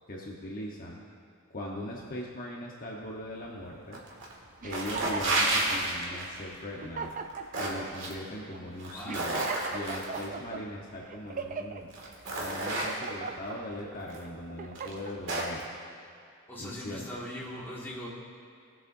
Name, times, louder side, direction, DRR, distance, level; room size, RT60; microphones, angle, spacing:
voice 1, 0.1-1.0 1.5-4.0 4.6-7.1 7.6-9.4 9.7-11.9 12.4-15.6 16.6-17.1, left 1 dB, 45° left, -3 dB, 1.1 m, -40 dB
sound 1, 3.9-4.3 4.6-6.4 7.1-8.1 8.7-10.3 11.3-11.4 11.9-13.3 14.1-14.2 14.7-15.6, right 2 dB, 65° right, 2.0 m, -31 dB
sound 2, 4.6-5.8 6.4-6.5 6.8-7.9 8.4-8.6 9.1-10.6 11.1-11.8 12.3-13.6 14.1-15.2, right 5 dB, 40° right, 0.5 m, -38 dB
voice 2, 8.9-9.6 16.5-18.1, equal, 10° left, -6 dB, 2.0 m, -41 dB
20.0 x 7.6 x 2.7 m, 2.5 s
head